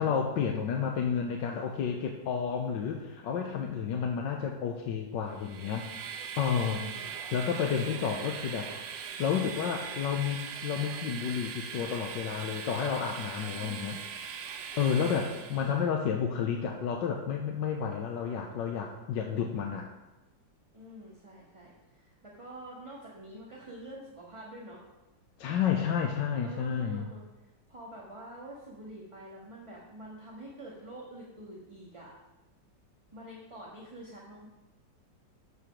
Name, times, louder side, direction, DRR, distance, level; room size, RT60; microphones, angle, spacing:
voice 1, 0.0-5.9 6.4-6.9 7.3-8.7 9.2-14.0 14.8-19.9 25.4-27.1, left 7 dB, 80° left, 2 dB, 1.5 m, -31 dB
Train, 5.3-15.8, right 7 dB, 80° right, 1.5 m, -41 dB
voice 2, 6.6-7.1 13.5-14.1 15.0-16.0 20.7-24.9 25.7-25.9 26.4-32.1 33.1-34.5, right 1 dB, 20° right, -5 dB, 1.5 m, -47 dB
13.5 x 4.7 x 5.2 m, 1.1 s
omnidirectional pair, 2.0 m